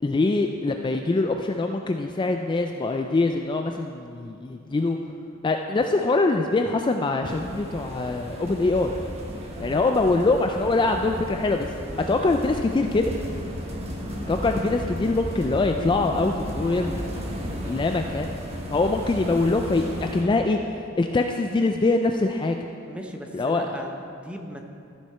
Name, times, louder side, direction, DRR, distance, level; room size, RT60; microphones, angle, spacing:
voice 1, 0.0-5.0 5.4-8.9 9.6-11.7 12.1-13.1 14.3-18.3 18.7-22.6 23.3-23.7, left 3 dB, 25° left, 4 dB, 0.3 m, -24 dB
sound 1, 7.2-20.2, equal, 30° right, 1.3 m, -34 dB
voice 2, 17.4-17.7 22.9-24.6, equal, 5° right, 3 dB, 0.7 m, -38 dB
14.0 x 6.5 x 4.3 m, 2.5 s
head